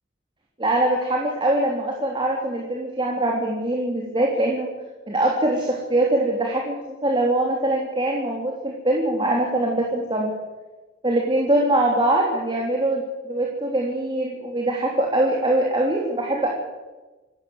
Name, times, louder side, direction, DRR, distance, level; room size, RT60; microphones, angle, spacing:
voice 1, 0.6-4.7 5.1-10.3 11.0-16.5, right 1 dB, 25° right, -1 dB, 3.3 m, -23 dB
27.0 x 14.5 x 7.9 m, 1.2 s
head